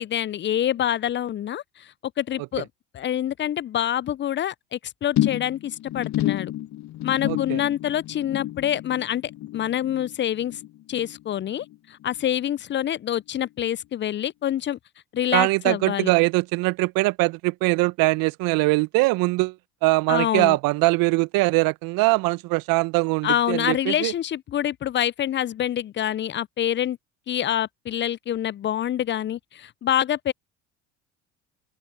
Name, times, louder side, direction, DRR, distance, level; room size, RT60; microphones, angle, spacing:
voice 1, 0.0-2.7 2.9-6.5 7.0-9.2 9.5-10.6 10.9-14.8 15.1-16.1 20.1-20.6 23.2-27.0 27.3-30.3, left 11 dB, 30° left, 0.5 m, -26 dB
sound 1, 5.2-11.7 12.0-12.4 12.8-12.9, left 14 dB, 45° left, 1.0 m, -30 dB
voice 2, 7.2-7.6 15.3-19.5 19.8-24.1, right 23 dB, 60° right, 1.3 m, -22 dB
open air
hypercardioid pair, 65°, 39 cm